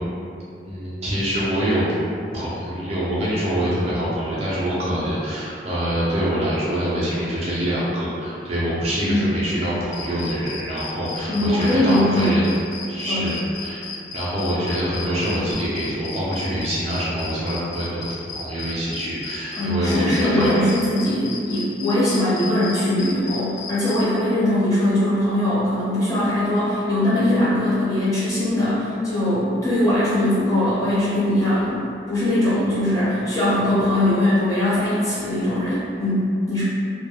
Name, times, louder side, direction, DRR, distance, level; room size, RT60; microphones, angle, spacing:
voice 1, 0.6-1.9 2.3-12.4 12.9-13.8 14.1-18.1 18.3-20.5, equal, 35° right, -9 dB, 0.4 m, -25 dB
sound 1, 9.9-24.0, left 5 dB, 70° left, 0.4 m, -34 dB
voice 2, 11.3-12.4 13.1-13.3 19.6-36.6, left 1 dB, 20° left, -12 dB, 0.7 m, -21 dB
2.2 x 2.0 x 2.9 m, 2.5 s
head